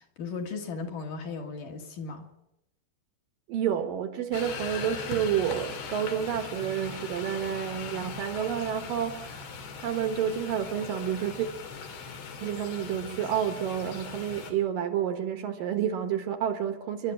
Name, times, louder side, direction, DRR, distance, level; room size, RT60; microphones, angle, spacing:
voice 1, 0.0-2.3, left 4 dB, 55° left, 3.3 m, -36 dB
voice 2, 3.5-9.5 9.8-11.5 12.4-17.1, right 9 dB, 65° right, 2.8 m, -29 dB
sound 1, 4.3-14.5, left 5 dB, 80° left, 4.7 m, -40 dB
29.5 x 12.0 x 8.9 m
omnidirectional pair, 4.7 m